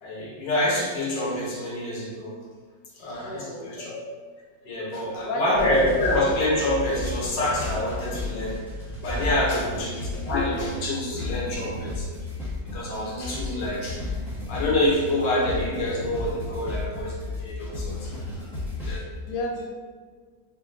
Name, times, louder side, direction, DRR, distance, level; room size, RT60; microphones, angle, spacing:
voice 1, 0.0-2.4 2.9-4.0 4.6-8.6 8.8-12.1 12.7-14.2 14.4-18.5 18.8-19.0, left 1 dB, 85° left, -3 dB, 1.6 m, -27 dB
voice 2, 3.2-3.8 4.9-5.4 5.9-6.0 9.5-9.7 16.8-16.9 17.9-18.1 19.3-19.7, left 2 dB, 65° left, 0 dB, 0.9 m, -34 dB
sound 1, 5.6-19.0, left 2 dB, ahead, 0.9 m, -33 dB
4.2 x 2.1 x 3.7 m, 1.5 s
omnidirectional pair, 1.9 m